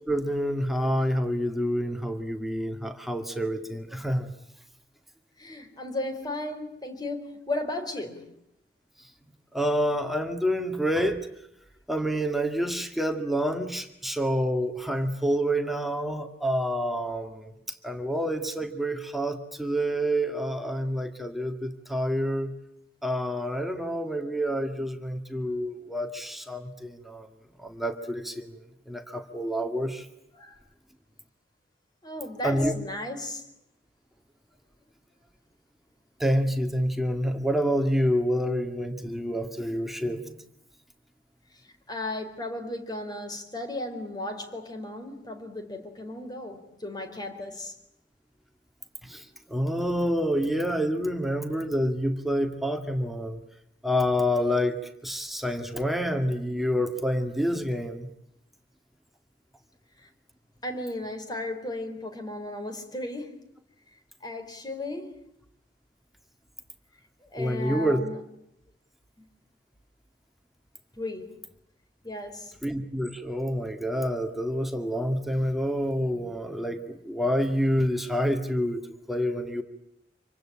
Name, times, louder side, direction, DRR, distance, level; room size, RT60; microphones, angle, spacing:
voice 1, 0.1-4.3 9.5-11.2 11.9-22.5 23.0-27.3 27.6-30.1 32.4-32.7 36.2-40.4 49.0-53.4 53.8-54.8 55.0-58.1 67.4-68.0 72.6-78.8 79.1-79.6, equal, ahead, 2.2 m, -28 dB
voice 2, 5.4-8.4 30.3-30.6 32.0-33.4 41.9-47.7 60.0-60.1 60.6-63.4 64.2-65.2 67.3-68.2 69.2-69.3 71.0-71.3 72.0-72.5, left 1 dB, 25° left, 4.4 m, -35 dB
27.5 x 24.5 x 8.8 m
head